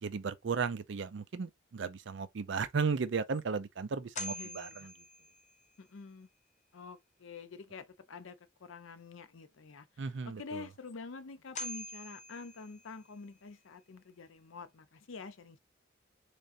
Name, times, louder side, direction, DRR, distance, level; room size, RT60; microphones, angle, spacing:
voice 1, 0.0-4.9 10.0-10.6, right 5 dB, 70° right, 0.5 m, -35 dB
sound 1, 2.7-2.8 3.3-3.4 4.1-5.8 10.9-11.0 11.5-13.2, left 2 dB, 35° left, 0.5 m, -44 dB
voice 2, 4.3-4.9 5.8-6.3 6.7-9.9 10.4-15.6, left 4 dB, 90° left, 0.6 m, -47 dB
3.7 x 3.3 x 2.6 m
head